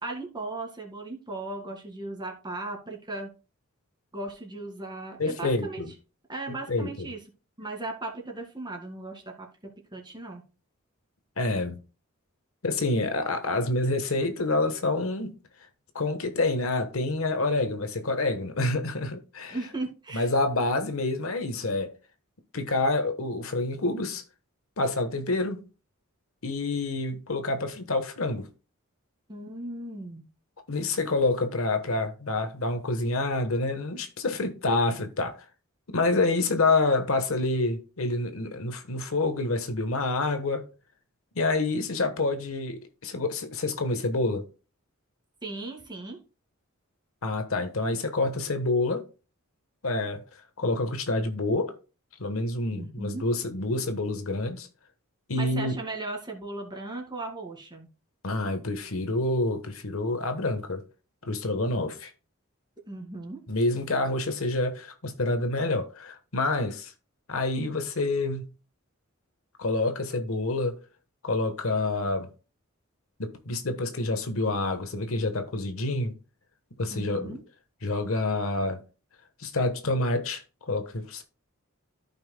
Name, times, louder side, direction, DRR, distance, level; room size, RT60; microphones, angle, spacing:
voice 1, 0.0-3.3 4.1-5.8 6.3-7.2 7.6-9.5 9.9-10.4 19.5-20.3 29.3-30.3 45.4-46.2 52.7-53.2 55.3-57.9 62.9-63.4 76.9-77.4, right 2 dB, 20° right, 2.0 m, -37 dB
voice 2, 5.2-5.9 6.7-7.1 11.4-11.8 12.6-15.4 15.9-19.6 20.1-21.9 22.5-24.2 24.8-25.7 26.4-28.5 30.7-35.4 35.9-40.7 41.3-44.5 47.2-49.1 49.8-50.3 50.6-51.7 52.2-54.7 55.3-55.8 58.2-60.8 61.3-62.1 63.5-66.9 67.3-68.5 69.6-70.8 71.2-72.3 73.2-76.1 76.8-77.4 77.8-78.8 79.4-81.2, left 2 dB, 70° left, 1.2 m, -27 dB
14.5 x 5.6 x 2.2 m
head